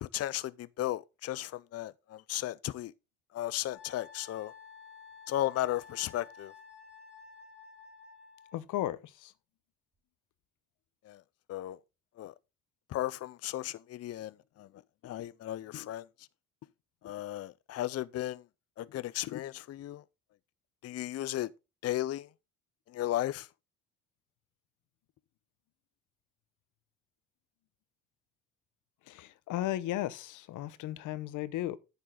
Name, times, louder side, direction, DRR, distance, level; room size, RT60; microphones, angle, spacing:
voice 1, 0.0-2.9 3.3-4.5 5.3-6.5 11.0-11.2 11.5-11.8 12.2-12.3 12.9-14.7 15.0-16.1 17.0-18.4 18.8-20.0 20.8-21.5 21.8-22.3 22.9-23.5, left 14 dB, 55° left, 0.5 m, -35 dB
Wind instrument woodwind instrument, 3.7-8.6, left 6 dB, 30° right, 4.2 m, -52 dB
voice 2, 8.5-9.3 29.1-31.8, left 14 dB, 90° left, 0.9 m, -35 dB
9.9 x 7.2 x 3.7 m
cardioid pair, 90°, 30 cm